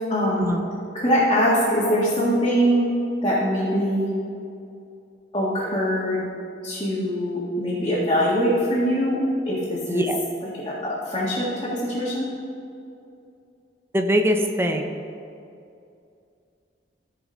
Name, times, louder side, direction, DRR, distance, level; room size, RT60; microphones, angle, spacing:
voice 1, 0.1-0.4 0.9-2.9 3.2-4.1 5.3-6.2 6.6-10.1 10.6-12.3, equal, 25° left, -9 dB, 1.6 m, -22 dB
voice 2, 9.9-10.2 13.9-14.9, equal, 15° right, 4 dB, 0.6 m, -23 dB
14.5 x 5.1 x 4.0 m, 2.5 s
head